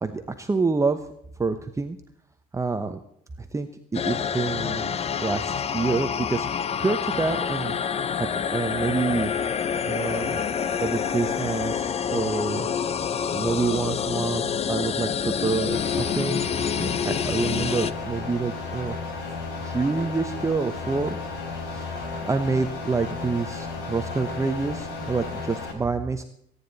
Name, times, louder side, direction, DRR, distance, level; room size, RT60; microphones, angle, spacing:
voice 1, 0.0-1.0 1.4-2.0 2.5-3.0 3.4-7.8 8.2-9.3 9.9-10.4 10.8-12.7 13.3-16.4 16.8-19.0 19.6-26.2, right 4 dB, 20° right, 7 dB, 0.9 m, -27 dB
sound 1, 3.9-17.9, left 7 dB, 35° left, 0.7 m, -27 dB
sound 2, 15.7-25.7, left 4 dB, 85° left, 3.7 m, -33 dB
23.0 x 9.9 x 4.1 m, 0.72 s
cardioid pair, 110°, 17 cm